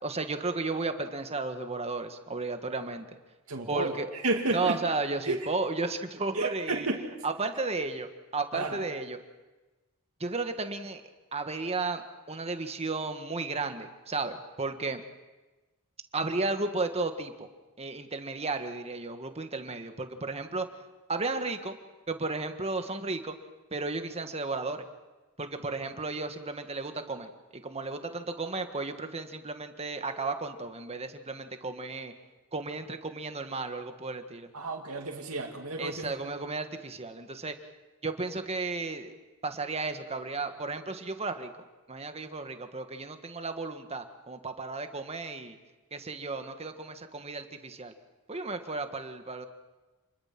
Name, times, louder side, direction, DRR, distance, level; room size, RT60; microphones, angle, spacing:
voice 1, 0.0-3.1 3.7-4.1 4.5-6.9 7.2-9.2 10.2-11.0 11.3-12.0 12.3-15.0 16.1-17.5 17.8-20.7 21.1-21.8 22.1-23.3 23.7-24.8 25.4-32.1 32.5-34.5 35.8-37.6 38.0-39.1 39.4-41.5 41.9-45.6 45.9-47.9 48.3-49.5, right 3 dB, 30° right, 7 dB, 1.6 m, -34 dB
voice 2, 3.5-3.9 4.2-4.8 5.2-5.4 6.3-7.1 8.5-8.8 34.5-36.1, right 2 dB, 70° right, 1 dB, 2.6 m, -31 dB
28.0 x 21.5 x 6.0 m, 1.2 s
head